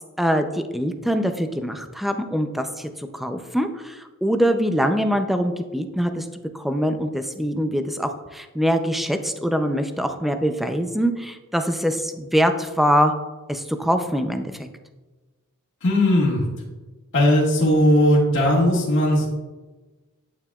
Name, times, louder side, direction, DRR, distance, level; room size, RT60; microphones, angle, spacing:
voice 1, 0.2-6.3 6.5-13.1 13.5-14.6, equal, ahead, 7 dB, 0.5 m, -23 dB
voice 2, 15.8-16.4 17.1-19.3, left 1 dB, 55° left, -6 dB, 1.6 m, -18 dB
9.0 x 8.7 x 2.3 m, 1.2 s
head